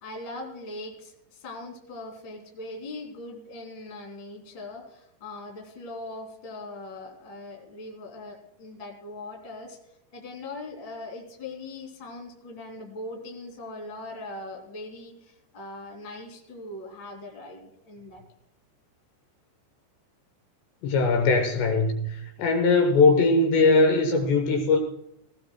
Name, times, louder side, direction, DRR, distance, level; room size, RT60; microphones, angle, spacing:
voice 1, 0.0-9.8 10.1-18.2, left 2 dB, 30° left, 1 dB, 2.6 m, -40 dB
voice 2, 20.8-24.8, left 3 dB, 75° left, 5 dB, 3.1 m, -21 dB
18.0 x 17.0 x 2.2 m, 0.83 s
omnidirectional pair, 5.4 m